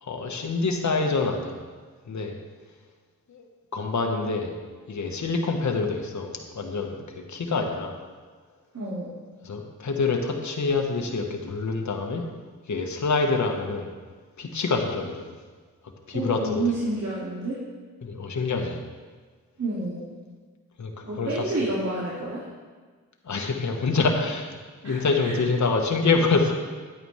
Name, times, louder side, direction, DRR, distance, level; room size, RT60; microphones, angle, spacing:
voice 1, 0.0-1.6 2.1-2.4 3.3-3.4 3.7-4.5 4.9-8.0 9.4-12.3 12.7-13.9 14.4-15.3 16.1-16.8 18.0-18.8 20.8-21.4 23.2-24.6 24.8-26.5, left 4 dB, 60° left, 3 dB, 1.4 m, -26 dB
voice 2, 8.7-9.1 16.1-17.6 19.6-20.0 21.0-22.4 24.8-25.0 25.2-25.4, right 2 dB, 50° right, -7 dB, 2.4 m, -29 dB
10.5 x 8.9 x 3.3 m, 1.5 s
cardioid pair, 45°, 33 cm